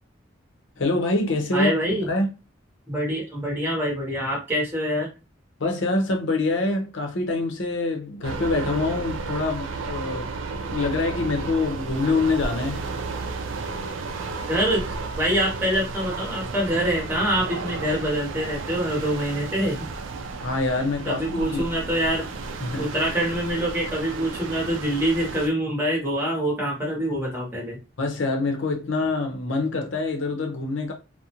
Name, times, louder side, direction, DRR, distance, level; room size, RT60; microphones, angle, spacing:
voice 1, 0.8-1.7 2.1-2.3 5.6-12.9 20.4-21.6 22.6-22.9 28.0-30.9, left 2 dB, 70° left, 0.6 m, -25 dB
voice 2, 1.5-2.1 2.9-5.1 14.5-14.8 15.2-19.8 21.1-22.3 22.8-27.8, equal, 10° right, 0.8 m, -25 dB
sound 1, 8.2-25.5, right 3 dB, 80° right, 0.4 m, -33 dB
2.4 x 2.1 x 2.8 m
head